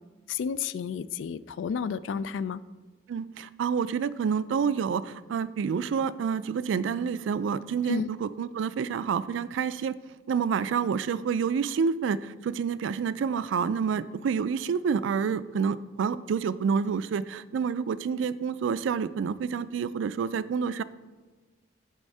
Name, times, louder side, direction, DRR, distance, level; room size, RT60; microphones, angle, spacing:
voice 1, 0.3-2.6 7.8-8.1, left 6 dB, 80° left, 16 dB, 0.3 m, -31 dB
voice 2, 3.1-10.0 10.3-20.8, right 6 dB, 85° right, 15 dB, 0.3 m, -28 dB
9.9 x 3.5 x 5.4 m, 1.3 s
head